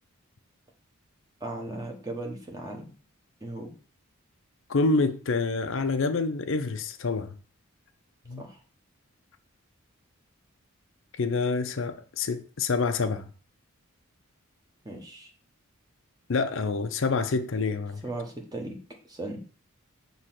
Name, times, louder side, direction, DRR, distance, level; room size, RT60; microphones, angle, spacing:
voice 1, 1.4-2.9 3.4-3.7 8.4-8.6 14.8-15.3 18.0-18.8 19.1-19.4, right 2 dB, 15° right, 1.1 m, -37 dB
voice 2, 4.7-7.3 8.3-8.4 11.2-13.3 16.3-18.0, left 3 dB, 60° left, 0.5 m, -27 dB
6.3 x 3.0 x 5.8 m
head